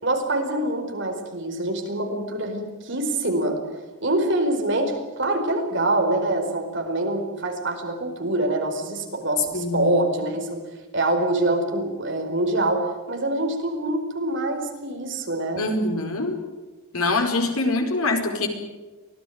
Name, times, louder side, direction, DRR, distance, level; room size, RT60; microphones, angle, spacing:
voice 1, 0.0-3.6 4.0-10.6 10.9-15.6, right 2 dB, 55° right, 3 dB, 4.8 m, -25 dB
voice 2, 9.5-9.9 15.6-16.4 16.9-18.5, left 2 dB, 80° left, 4 dB, 4.7 m, -24 dB
24.5 x 17.0 x 9.5 m, 1.2 s
head